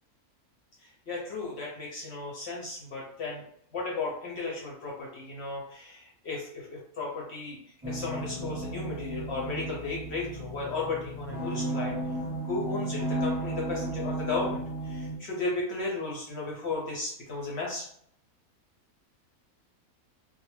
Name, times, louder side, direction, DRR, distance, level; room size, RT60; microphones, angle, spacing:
voice 1, 0.8-3.4 3.7-7.6 7.8-11.9 12.4-17.9, left 3 dB, 60° left, -3 dB, 0.7 m, -35 dB
sound 1, 7.8-15.2, right 1 dB, 5° right, 0.5 m, -34 dB
2.3 x 2.1 x 3.0 m, 0.66 s
omnidirectional pair, 1.5 m